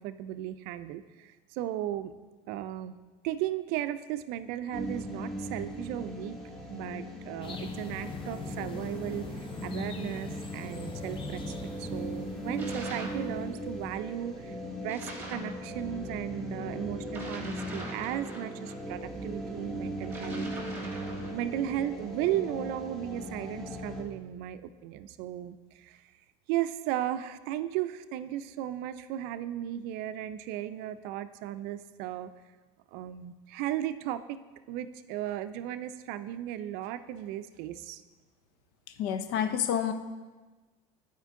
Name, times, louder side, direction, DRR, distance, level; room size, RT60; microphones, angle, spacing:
voice 1, 0.0-2.1 2.5-3.0 3.2-6.4 6.7-11.4 11.8-21.0 21.3-26.0 26.5-32.3 32.9-34.4 34.7-38.0, right 12 dB, 75° right, 12 dB, 0.4 m, -35 dB
sound 1, 4.7-24.0, equal, ahead, 1.5 m, -38 dB
sound 2, 7.4-14.3, left 4 dB, 30° left, 0.7 m, -43 dB
sound 3, 12.6-13.3 14.9-15.6 17.1-18.8 20.0-21.4, right 1 dB, 15° right, 1.8 m, -43 dB
voice 2, 39.0-39.9, left 9 dB, 70° left, 10 dB, 0.6 m, -28 dB
9.2 x 4.5 x 3.7 m, 1.3 s
supercardioid pair, 100°, 16 cm